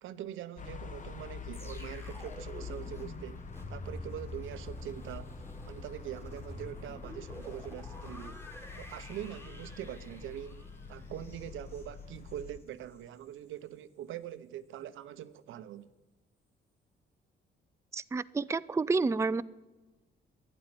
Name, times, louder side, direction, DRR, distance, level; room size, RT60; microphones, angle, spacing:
voice 1, 0.0-5.3 5.6-8.4 8.8-10.6 10.9-15.9, right 11 dB, 80° right, 0.9 m, -43 dB
sound 1, 0.6-12.6, left 5 dB, 40° left, 1.3 m, -46 dB
sound 2, 1.5-12.6 13.0-13.2, left 1 dB, 10° left, 2.1 m, -48 dB
voice 2, 17.9-19.4, right 4 dB, 15° right, 0.4 m, -29 dB
12.0 x 10.0 x 9.7 m
cardioid pair, 90°, 20 cm